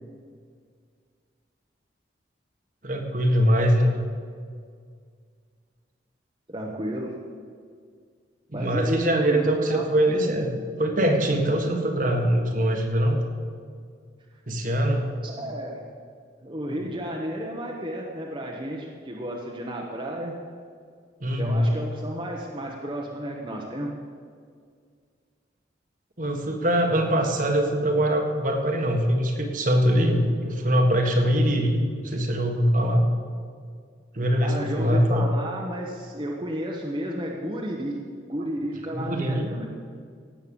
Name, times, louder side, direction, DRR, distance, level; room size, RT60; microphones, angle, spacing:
voice 1, 2.8-4.0 8.5-10.5 10.8-13.2 14.5-15.1 16.7-16.9 21.2-21.7 26.2-33.0 34.1-35.3 38.9-39.5, equal, 45° right, 3 dB, 1.6 m, -23 dB
voice 2, 6.5-7.1 8.5-9.8 15.2-15.8 16.4-20.4 21.4-23.9 34.4-38.0 38.3-39.7, equal, 25° right, -2 dB, 1.2 m, -32 dB
17.5 x 8.0 x 7.1 m, 2.1 s
head